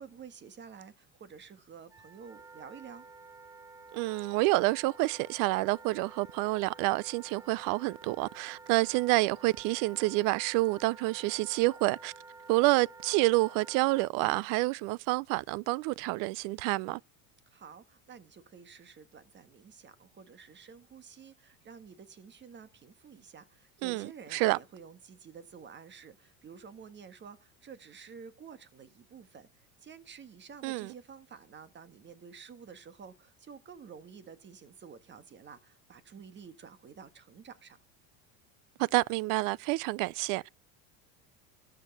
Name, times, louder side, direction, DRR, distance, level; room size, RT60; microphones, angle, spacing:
voice 1, 0.0-3.1 17.5-37.8, right 6 dB, 30° right, 1.6 m, -50 dB
Wind instrument woodwind instrument, 1.9-14.1, right 3 dB, 10° right, 1.1 m, -51 dB
voice 2, 3.9-12.1 12.5-17.0 23.8-24.6 30.6-30.9 38.8-40.4, right 22 dB, 55° right, 0.5 m, -28 dB
13.5 x 6.5 x 6.5 m
supercardioid pair, 120°, 39 cm